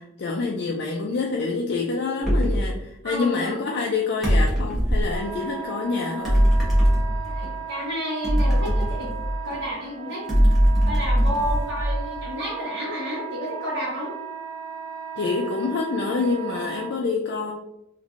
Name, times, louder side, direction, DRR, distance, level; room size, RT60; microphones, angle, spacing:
voice 1, 0.0-6.4 15.2-17.5, left 4 dB, 55° left, -1 dB, 0.3 m, -27 dB
sound 1, 2.2-2.7 4.2-5.2 6.2-7.5 8.2-9.6 10.3-12.2, equal, ahead, 0.9 m, -21 dB
voice 2, 3.0-3.5 7.2-9.1 9.4-10.3 10.8-14.1, equal, 55° right, -10 dB, 1.0 m, -31 dB
Wind instrument woodwind instrument, 5.1-16.9, right 8 dB, 30° left, 1.1 m, -36 dB
3.0 x 2.5 x 2.5 m, 0.86 s
head